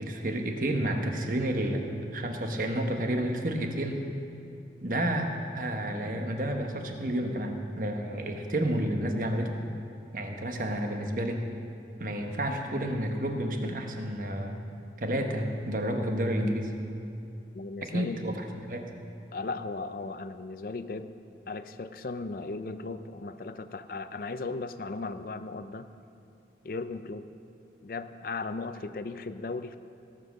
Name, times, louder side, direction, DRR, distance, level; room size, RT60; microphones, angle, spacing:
voice 1, 0.0-1.9 2.1-4.0 4.8-5.3 5.5-9.5 10.1-11.4 12.0-14.6 15.0-16.7 17.8-18.9, right 1 dB, 50° right, 4 dB, 1.1 m, -30 dB
voice 2, 17.5-18.2 19.3-21.1 21.5-25.9 26.6-27.3 27.8-29.8, left 3 dB, 50° left, 11 dB, 0.5 m, -36 dB
16.0 x 7.4 x 6.4 m, 2.6 s
head